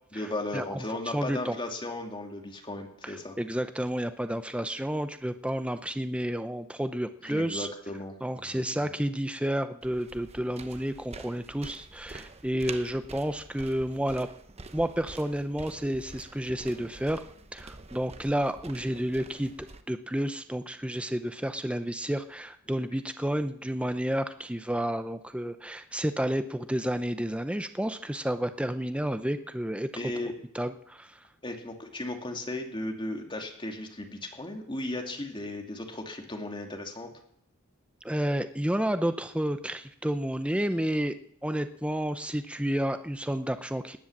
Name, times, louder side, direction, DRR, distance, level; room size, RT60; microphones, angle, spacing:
voice 1, 0.1-3.4 7.2-8.9 29.9-30.3 31.4-37.1, left 1 dB, 25° left, 3 dB, 2.7 m, -36 dB
voice 2, 1.1-1.6 3.0-7.7 8.2-14.3 14.7-17.2 17.5-19.5 19.9-30.1 30.5-31.2 38.0-41.1 41.4-44.0, equal, 5° right, 10 dB, 0.7 m, -30 dB
sound 1, 9.8-19.8, right 3 dB, 30° right, 0.9 m, -46 dB
19.0 x 10.0 x 7.4 m, 0.68 s
head